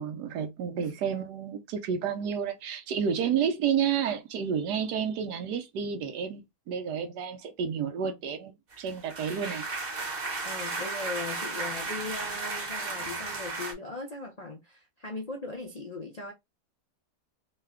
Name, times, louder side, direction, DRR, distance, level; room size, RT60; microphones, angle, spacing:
voice 1, 0.0-9.6, right 7 dB, 80° right, 1.3 m, -30 dB
sound 1, 8.7-13.7, right 3 dB, 40° right, 0.9 m, -34 dB
voice 2, 10.4-16.3, left 3 dB, 85° left, 0.3 m, -39 dB
3.3 x 2.2 x 3.5 m
omnidirectional pair, 1.8 m